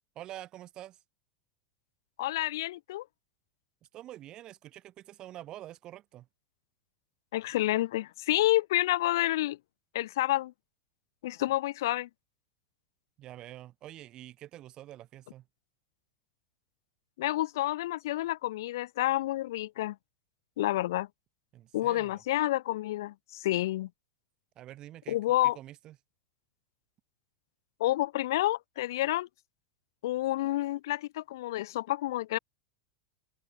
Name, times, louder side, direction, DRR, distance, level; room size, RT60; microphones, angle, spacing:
voice 1, 0.2-1.0 3.9-6.3 13.2-15.5 21.5-22.2 24.6-25.2 25.5-26.0, right 13 dB, 35° right, 4.0 m, -46 dB
voice 2, 2.2-3.0 7.3-9.6 9.9-10.5 11.2-12.1 17.2-20.0 20.6-21.1 21.7-23.9 25.1-25.6 27.8-29.3 30.0-32.4, left 15 dB, 55° left, 0.4 m, -29 dB
open air
figure-of-eight pair, 90°, 2 cm